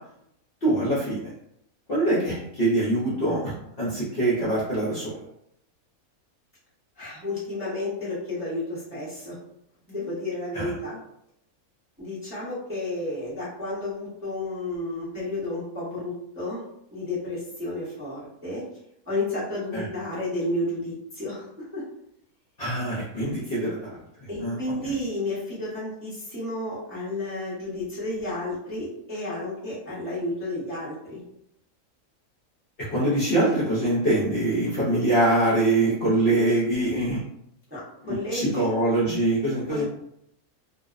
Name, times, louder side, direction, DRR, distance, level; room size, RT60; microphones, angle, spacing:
voice 1, 0.6-1.3 1.9-5.2 10.5-10.7 19.7-19.9 22.6-24.6 32.9-37.2 38.0-39.8, right 1 dB, 50° left, -8 dB, 0.7 m, -24 dB
voice 2, 7.0-9.4 9.9-11.0 12.0-16.6 16.9-18.6 19.1-21.8 23.6-23.7 24.3-31.2 37.7-37.8 38.1-38.7 39.7-39.8, left 1 dB, 10° right, -10 dB, 0.7 m, -32 dB
2.6 x 2.0 x 2.4 m, 0.75 s
omnidirectional pair, 1.5 m